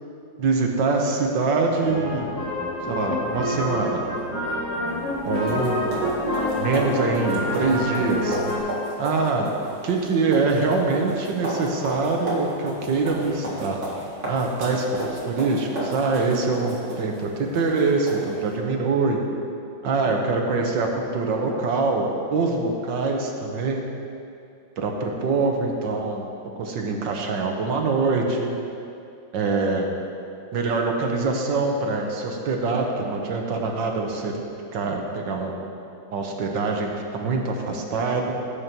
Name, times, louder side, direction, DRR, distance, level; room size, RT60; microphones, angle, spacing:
voice 1, 0.4-2.3 2.9-4.0 5.3-5.9 6.6-8.4 9.0-9.5 9.8-13.8 14.3-19.2 19.8-23.8 24.8-26.2 26.6-28.5 29.3-29.9 30.5-34.3 34.7-35.5 36.1-38.4, right 3 dB, 75° right, 1 dB, 1.8 m, -24 dB
sound 1, 1.8-8.6, left 1 dB, 65° left, 3.6 m, -27 dB
sound 2, 4.9-18.6, equal, 40° right, 2.0 m, -34 dB
17.5 x 8.3 x 3.1 m, 2.6 s
omnidirectional pair, 2.0 m